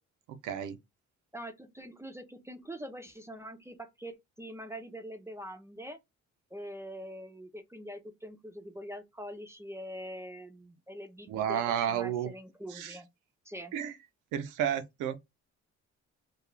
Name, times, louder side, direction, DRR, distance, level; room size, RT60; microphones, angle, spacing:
voice 1, 0.3-0.8 11.3-12.3 12.7-13.0 13.7-14.0 14.3-15.2, right 9 dB, 85° right, 0.5 m, -32 dB
voice 2, 1.3-6.0 6.5-13.1 13.5-13.7, equal, 10° right, 0.4 m, -44 dB
2.3 x 2.3 x 3.0 m
cardioid pair, 90°, 30 cm